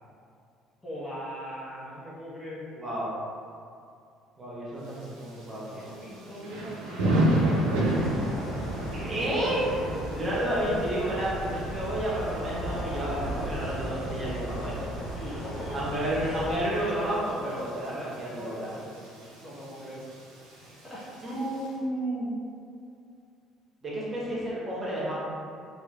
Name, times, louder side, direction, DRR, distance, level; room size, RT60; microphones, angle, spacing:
voice 1, 0.8-2.7 5.7-9.3 15.1-16.2 18.3-18.8 19.4-20.1 20.6-21.1, equal, 15° left, -8 dB, 0.9 m, -41 dB
voice 2, 2.8-3.1 4.4-5.9 8.9-14.9 15.7-18.7 21.2-22.3 23.8-25.1, right 1 dB, 35° right, -7 dB, 0.8 m, -31 dB
Thunder / Rain, 4.8-21.7, right 1 dB, 85° right, 0.5 m, -33 dB
sound 1, 7.8-16.6, equal, 75° left, 0.8 m, -36 dB
2.9 x 2.4 x 2.3 m, 2.4 s
hypercardioid pair, 65°, 0 cm